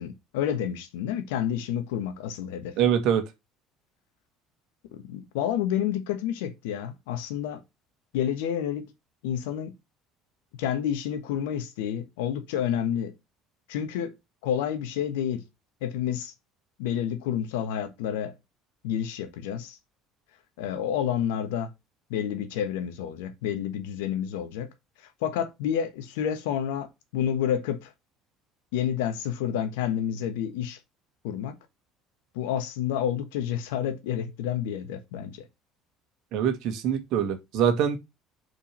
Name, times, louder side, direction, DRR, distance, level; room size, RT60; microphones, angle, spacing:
voice 1, 0.0-2.8 4.9-7.6 8.1-8.9 9.2-9.7 10.6-13.1 13.7-14.1 14.4-15.4 15.8-16.3 16.8-18.3 18.8-19.8 20.6-21.7 22.1-24.7 25.2-27.9 28.7-30.8 31.2-31.5 32.3-35.4, left 9 dB, 70° left, 1.2 m, -29 dB
voice 2, 2.8-3.2 36.3-38.0, right 8 dB, 60° right, 1.6 m, -24 dB
5.6 x 4.7 x 5.8 m
hypercardioid pair, 60°, 0 cm